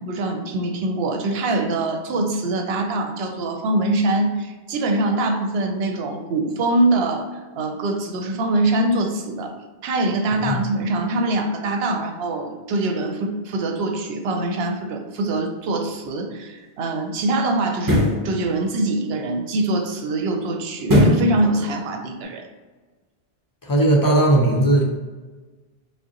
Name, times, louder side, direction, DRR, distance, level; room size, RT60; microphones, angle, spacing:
voice 1, 0.0-7.3 7.6-9.5 9.8-22.4, right 2 dB, 75° right, 4 dB, 0.8 m, -23 dB
sound 1, 15.9-16.0 17.7-18.2 20.9-21.3 21.8-21.9, left 1 dB, 20° right, 0.8 m, -17 dB
voice 2, 23.6-24.8, right 1 dB, 35° left, -2 dB, 0.3 m, -17 dB
4.9 x 2.0 x 2.8 m, 1.3 s
omnidirectional pair, 1.0 m